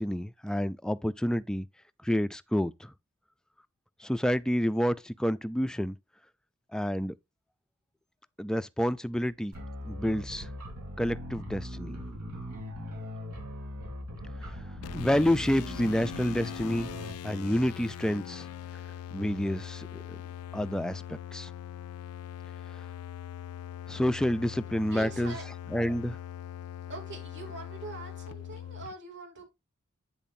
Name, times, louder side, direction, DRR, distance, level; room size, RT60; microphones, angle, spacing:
voice 1, 0.0-1.7 2.0-2.9 4.0-6.0 6.7-7.1 8.4-9.5 9.8-10.5 11.0-12.0 14.4-14.5 14.9-16.9 17.2-18.5 19.1-19.9 20.5-21.5 23.9-25.4 25.7-26.2, equal, 5° left, 0.3 m, -29 dB
sound 1, 9.5-17.1, equal, 80° right, 3.6 m, -40 dB
sound 2, 14.8-28.9, left 10 dB, 75° left, 0.3 m, -42 dB
voice 2, 24.9-25.5 26.9-29.5, right 4 dB, 55° right, 2.9 m, -43 dB
8.4 x 7.0 x 2.6 m
head